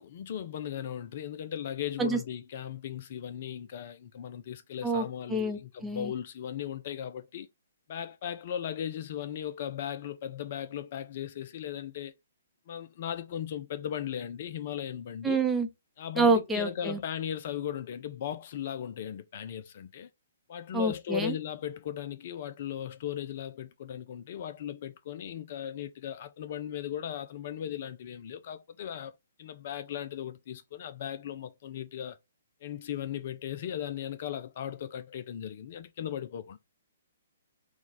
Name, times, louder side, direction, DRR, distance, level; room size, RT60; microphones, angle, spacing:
voice 1, 0.0-7.5 7.9-12.1 12.7-15.4 16.0-20.1 20.5-29.1 29.4-32.2 32.6-36.6, left 9 dB, 45° left, 0.4 m, -37 dB
voice 2, 4.8-6.1 15.2-15.7 16.2-17.0 20.7-21.3, right 3 dB, 10° right, 0.7 m, -27 dB
4.7 x 2.3 x 3.9 m
figure-of-eight pair, 125°, 0 cm